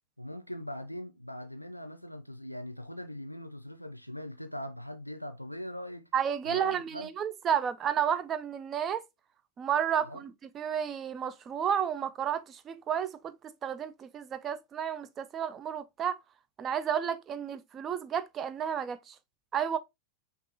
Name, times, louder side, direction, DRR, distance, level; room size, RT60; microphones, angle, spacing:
voice 1, 0.2-6.1 6.4-7.1 10.0-10.2, left 1 dB, 90° left, 0.5 m, -41 dB
voice 2, 6.1-9.0 9.6-16.2 16.6-19.2 19.5-19.8, right 8 dB, 25° right, 0.5 m, -32 dB
5.8 x 2.5 x 2.7 m
figure-of-eight pair, 90°, 0 cm